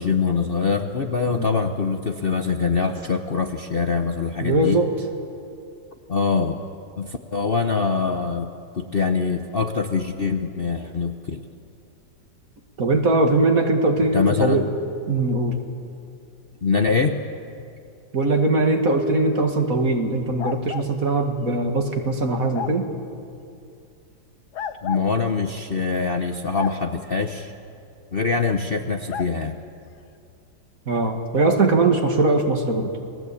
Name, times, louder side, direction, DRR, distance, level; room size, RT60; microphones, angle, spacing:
voice 1, 0.0-4.8 6.1-6.6 7.0-8.5 8.7-11.5 14.1-14.6 16.6-17.2 24.8-27.5 28.1-29.6, left 4 dB, 40° left, 5 dB, 0.9 m, -23 dB
voice 2, 4.4-4.9 12.8-14.6 15.1-15.6 18.1-22.9 30.9-32.9, right 2 dB, 50° right, 4 dB, 2.4 m, -21 dB
sound 1, 20.4-20.9 22.5-22.8 24.5-25.1 26.5-26.8 29.1-29.3, left 8 dB, 65° left, 1.4 m, -31 dB
29.5 x 20.5 x 8.5 m, 2.5 s
omnidirectional pair, 2.0 m